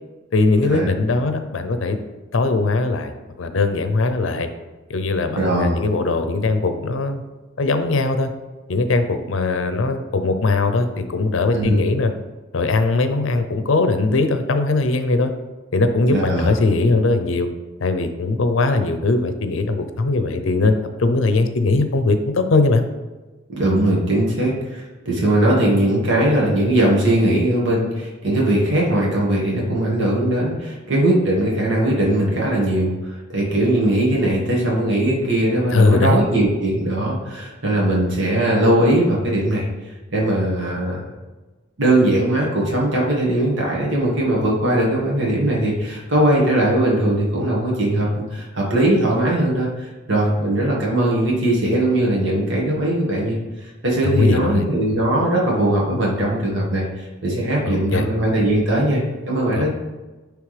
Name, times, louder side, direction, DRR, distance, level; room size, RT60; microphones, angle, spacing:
voice 1, 0.3-2.0 2.3-3.1 3.4-4.5 4.9-7.2 7.6-8.3 8.7-12.1 12.5-15.3 15.7-17.5 17.8-22.8 35.7-36.2 54.0-54.6 57.7-58.1 59.5-59.7, left 3 dB, 80° left, 8 dB, 0.6 m, -20 dB
voice 2, 5.4-5.8 11.5-11.9 16.1-16.5 23.5-39.7 40.1-41.0 41.8-59.7, right 1 dB, 65° right, -4 dB, 1.6 m, -20 dB
9.5 x 3.4 x 3.3 m, 1.2 s
head